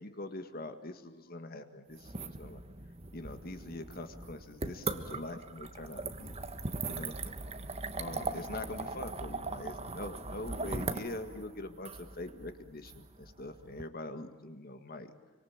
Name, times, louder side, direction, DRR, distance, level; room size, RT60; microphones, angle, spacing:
voice 1, 0.0-2.6 3.1-6.3 6.8-7.2 7.9-15.1, left 2 dB, 45° left, 8 dB, 1.8 m, -43 dB
sound 1, 1.9-13.8, right 3 dB, 30° right, 1.4 m, -40 dB
26.5 x 25.0 x 8.9 m, 1.3 s
head